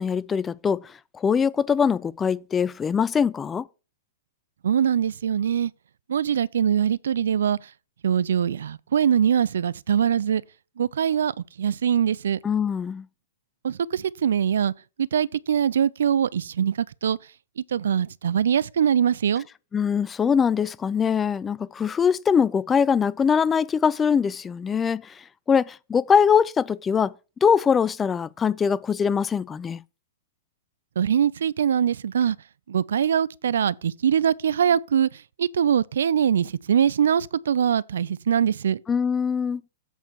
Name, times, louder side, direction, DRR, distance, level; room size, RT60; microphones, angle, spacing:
voice 1, 0.0-3.7 12.4-13.1 19.7-25.2 25.5-27.1 27.4-29.8 38.9-39.6, left 6 dB, 20° left, 0.3 m, -22 dB
voice 2, 4.6-5.7 6.1-7.6 8.0-10.4 10.8-11.3 11.6-12.4 13.6-14.7 15.0-17.2 17.6-19.5 31.0-32.4 32.7-35.1 35.4-38.8, right 8 dB, 70° right, 0.3 m, -22 dB
8.1 x 4.4 x 6.2 m
figure-of-eight pair, 105°, 0 cm